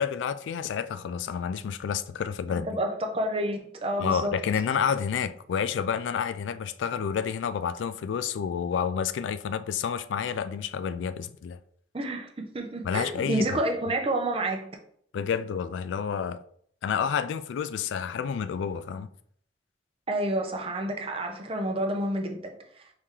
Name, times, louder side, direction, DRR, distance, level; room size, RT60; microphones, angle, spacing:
voice 1, 0.0-2.7 4.0-11.6 12.8-13.6 15.1-16.4 16.8-19.1, left 7 dB, 85° left, 0.3 m, -29 dB
voice 2, 2.6-4.4 11.9-14.7 20.1-22.8, right 1 dB, 30° right, 0.6 m, -29 dB
4.7 x 2.8 x 3.7 m
head